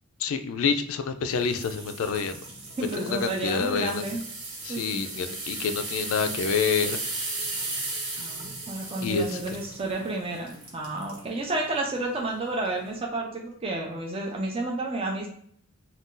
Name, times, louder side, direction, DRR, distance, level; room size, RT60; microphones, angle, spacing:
voice 1, 0.2-2.3 3.0-4.0 4.6-7.0 9.0-9.4, left 5 dB, 75° left, 9 dB, 0.3 m, -27 dB
sound 1, 1.4-11.3 11.8-12.0 12.6-12.7, right 2 dB, 75° right, 1.1 m, -36 dB
voice 2, 2.8-4.2 4.7-5.1 8.2-15.3, right 2 dB, 25° right, 0 dB, 0.4 m, -31 dB
2.5 x 2.3 x 3.7 m, 0.63 s
head